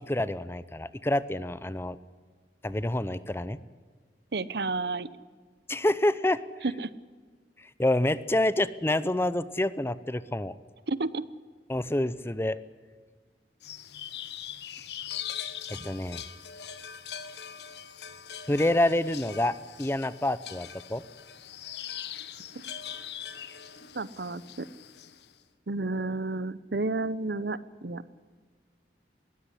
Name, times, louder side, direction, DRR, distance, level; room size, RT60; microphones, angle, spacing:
voice 1, 0.1-2.0 2.6-3.6 5.7-6.4 7.8-10.5 11.7-12.6 15.7-16.2 18.5-21.0, left 1 dB, 15° left, 16 dB, 0.6 m, -27 dB
voice 2, 4.3-5.1 6.6-6.9 10.9-11.2 23.9-24.7 25.7-28.0, right 3 dB, 65° right, 17 dB, 0.8 m, -31 dB
sound 1, 13.6-25.3, left 9 dB, 70° left, 1.2 m, -41 dB
20.0 x 16.0 x 9.9 m, 1.5 s
head